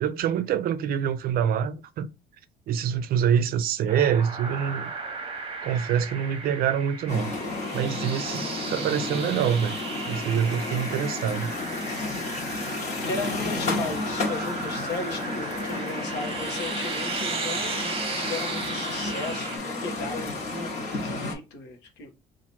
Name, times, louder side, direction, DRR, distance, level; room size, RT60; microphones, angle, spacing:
voice 1, 0.0-2.1 2.7-4.9 5.6-7.3 7.7-9.8 10.1-11.5, right 8 dB, 60° right, 0.5 m, -25 dB
sound 1, 3.9-19.6, right 4 dB, 35° right, 0.8 m, -36 dB
sound 2, 7.1-21.3, left 3 dB, 45° left, 1.2 m, -32 dB
voice 2, 13.1-22.1, left 3 dB, 90° left, 1.0 m, -36 dB
2.9 x 2.5 x 4.3 m
cardioid pair, 110°, 17 cm